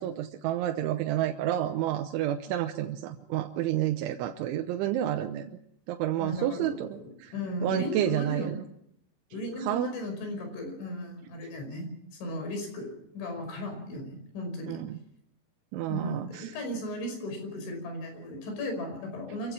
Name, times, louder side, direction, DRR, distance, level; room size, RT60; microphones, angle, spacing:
voice 1, 0.0-5.5 5.9-7.3 7.6-8.6 9.6-9.9 14.7-15.0 15.7-16.6, right 12 dB, 90° right, 5 dB, 3.4 m, -30 dB
voice 2, 6.2-8.5 9.3-11.9 12.2-14.8 15.9-19.5, left 1 dB, 80° left, 5 dB, 7.7 m, -36 dB
25.5 x 16.0 x 7.4 m, 0.77 s
omnidirectional pair, 5.3 m